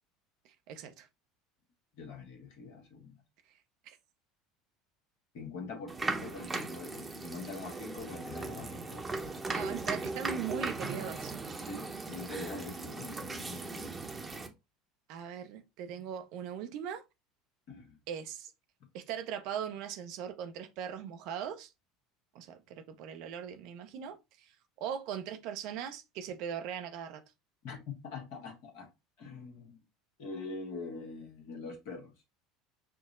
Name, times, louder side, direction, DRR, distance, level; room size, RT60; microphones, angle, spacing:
voice 1, 0.7-1.1 3.9-4.0 9.5-11.3 15.1-17.0 18.1-18.5 18.9-21.7 22.3-24.5 24.8-27.2, right 8 dB, 60° right, 0.6 m, -40 dB
voice 2, 2.0-3.2 5.3-9.3 11.6-14.0 17.7-18.0 27.6-28.9 29.2-29.8 30.2-32.1, left 4 dB, 65° left, 1.1 m, -44 dB
sound 1, 5.9-14.5, right 3 dB, 20° right, 0.8 m, -38 dB
5.7 x 2.0 x 2.5 m
hypercardioid pair, 75°, 0 cm